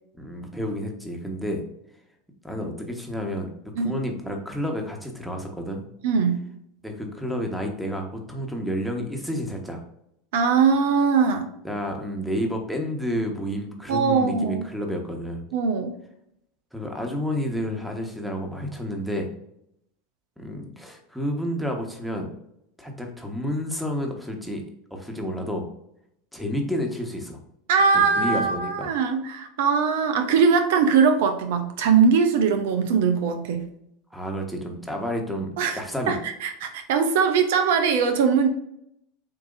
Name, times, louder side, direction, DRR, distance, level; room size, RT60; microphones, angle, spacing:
voice 1, 0.2-1.6 2.4-3.5 3.8-5.8 6.8-9.8 11.6-15.4 16.7-19.3 20.4-22.3 22.8-24.6 24.9-25.6 26.3-27.4 27.9-28.9 34.1-36.2, equal, ahead, 3 dB, 1.2 m, -30 dB
voice 2, 6.0-6.4 10.3-11.5 13.9-14.6 15.5-15.9 27.7-33.6 35.6-35.8 36.1-38.5, right 5 dB, 70° right, 7 dB, 0.6 m, -21 dB
7.4 x 2.8 x 2.5 m, 0.77 s
hypercardioid pair, 90°, 0 cm